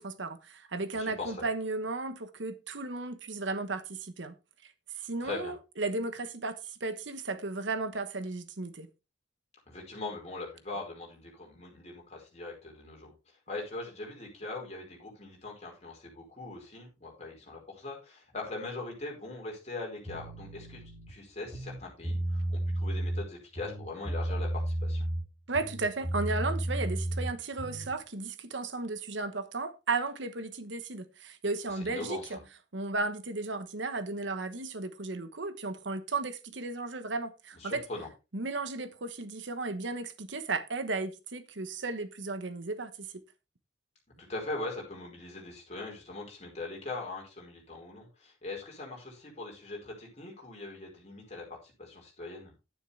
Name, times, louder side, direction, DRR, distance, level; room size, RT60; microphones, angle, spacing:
voice 1, 0.0-4.3 5.0-8.9 25.5-32.4 32.7-37.8 38.3-43.1, right 3 dB, 70° right, 1.1 m, -35 dB
voice 2, 0.9-1.4 5.2-5.5 9.7-13.1 13.5-20.8 21.1-25.1 31.7-32.4 37.6-38.1 44.2-52.5, left 2 dB, 35° left, 4.7 m, -41 dB
sound 1, 20.0-21.1 21.5-23.2 23.6-25.3 25.5-27.9, right 1 dB, 25° right, 6.6 m, -33 dB
11.0 x 9.6 x 3.4 m
head